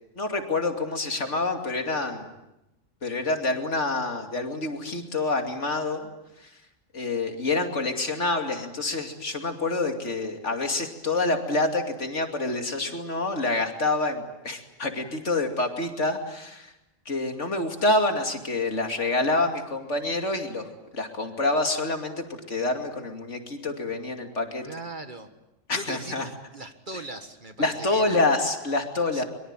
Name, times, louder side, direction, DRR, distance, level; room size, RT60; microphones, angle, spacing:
voice 1, 0.2-2.3 3.0-6.1 6.9-16.7 17.1-20.7 20.9-24.7 25.7-26.3 27.6-29.2, left 2 dB, 65° left, 5 dB, 2.9 m, -27 dB
voice 2, 24.6-25.3 25.7-28.3 29.1-29.2, right 2 dB, 40° right, 8 dB, 1.8 m, -39 dB
24.0 x 24.0 x 9.0 m, 0.90 s
omnidirectional pair, 1.3 m